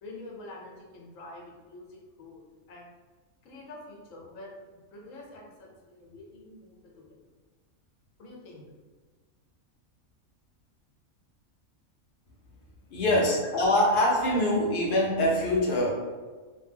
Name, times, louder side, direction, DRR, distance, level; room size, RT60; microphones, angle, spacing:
voice 1, 0.0-2.4 2.7-2.9 3.4-4.5 4.9-7.2 8.2-8.6, left 2 dB, 75° left, -2 dB, 1.1 m, -46 dB
voice 2, 12.9-15.9, left 1 dB, 55° left, -3 dB, 0.6 m, -24 dB
2.6 x 2.1 x 3.3 m, 1.4 s
omnidirectional pair, 1.4 m